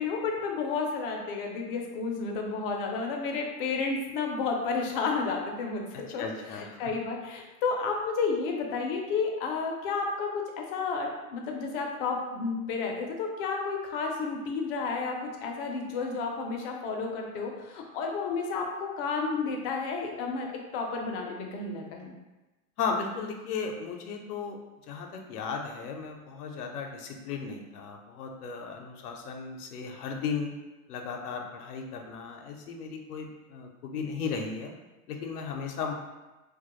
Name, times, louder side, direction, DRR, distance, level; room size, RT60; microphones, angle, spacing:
voice 1, 0.0-22.1, left 4 dB, 40° left, 1 dB, 0.4 m, -31 dB
voice 2, 6.2-6.8 22.8-24.6 24.9-30.5 30.9-34.7 35.1-35.9, left 5 dB, 90° left, 2 dB, 0.6 m, -35 dB
2.2 x 2.0 x 2.9 m, 1.1 s
hypercardioid pair, 130°, 45 cm